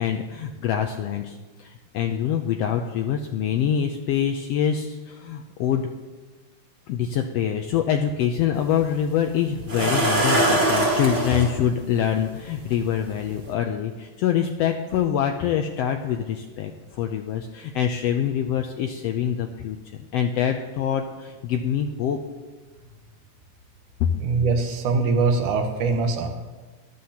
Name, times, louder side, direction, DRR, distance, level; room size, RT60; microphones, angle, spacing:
voice 1, 0.0-1.7 1.9-5.9 6.9-16.7 17.0-22.2 24.0-24.1, left 9 dB, 85° left, 5 dB, 1.4 m, -25 dB
sound 1, 8.6-8.7 9.7-11.5 12.7-12.8 13.3-13.5, right 1 dB, 35° right, 2.1 m, -21 dB
voice 2, 24.2-26.3, right 4 dB, 85° right, 5 dB, 2.6 m, -22 dB
14.0 x 12.0 x 2.9 m, 1.3 s
omnidirectional pair, 3.4 m